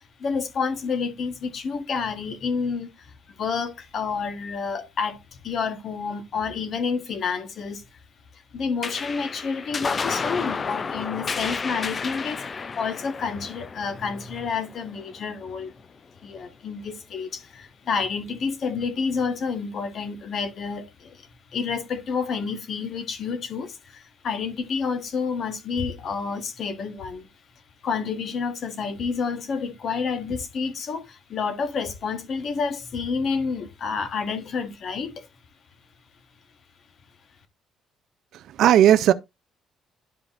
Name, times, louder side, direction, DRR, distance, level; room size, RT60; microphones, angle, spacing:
voice 1, 0.2-3.1 3.4-7.8 8.5-15.7 16.2-27.3 27.8-35.3, left 5 dB, 45° left, 1.2 m, -29 dB
sound 1, 8.8-15.6, left 5 dB, 30° left, 0.4 m, -32 dB
voice 2, 38.3-39.1, right 11 dB, 65° right, 0.4 m, -17 dB
11.5 x 5.0 x 2.5 m
cardioid pair, 150°, 0 cm